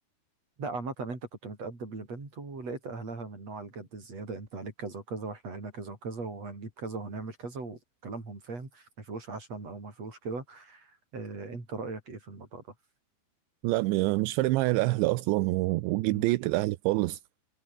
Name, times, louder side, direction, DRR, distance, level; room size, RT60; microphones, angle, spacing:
voice 1, 0.6-12.6 16.0-16.3, right 3 dB, 35° right, 8.0 m, -39 dB
voice 2, 13.6-17.2, right 20 dB, 80° right, 3.0 m, -26 dB
omnidirectional pair, 5.3 m